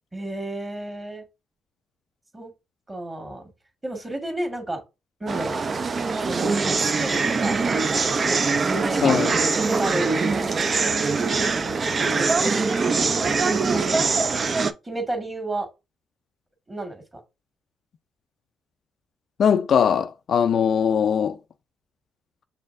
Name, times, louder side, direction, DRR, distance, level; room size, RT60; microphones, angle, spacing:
voice 1, 0.1-1.2 2.3-2.5 2.9-3.5 3.8-4.8 5.2-5.6 6.2-9.2 9.6-14.1 14.8-15.7 16.7-17.0, right 1 dB, 20° right, 1.7 m, -33 dB
sound 1, 5.3-14.7, right 4 dB, 40° right, 0.5 m, -23 dB
voice 2, 9.0-9.3 19.4-21.4, left 7 dB, 60° left, 0.4 m, -20 dB
6.5 x 2.7 x 2.5 m
cardioid pair, 90°, 0 cm